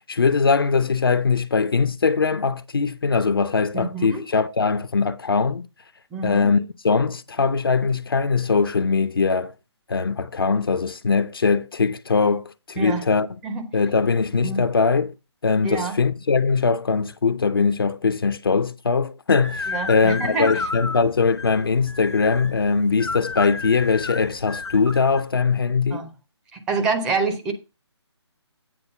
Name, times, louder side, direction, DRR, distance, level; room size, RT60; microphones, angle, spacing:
voice 1, 0.0-5.7 6.2-9.5 9.9-13.4 13.7-15.1 15.4-26.1, left 4 dB, 55° left, 0.5 m, -21 dB
voice 2, 3.7-4.2 6.1-6.5 12.8-13.0 13.4-13.7 14.4-14.6 15.6-16.0 19.7-20.5 25.9-26.1 26.5-27.5, right 4 dB, 5° right, 0.5 m, -26 dB
sound 1, 19.4-25.2, left 3 dB, 75° left, 0.8 m, -32 dB
8.8 x 3.9 x 6.5 m
figure-of-eight pair, 145°, 15 cm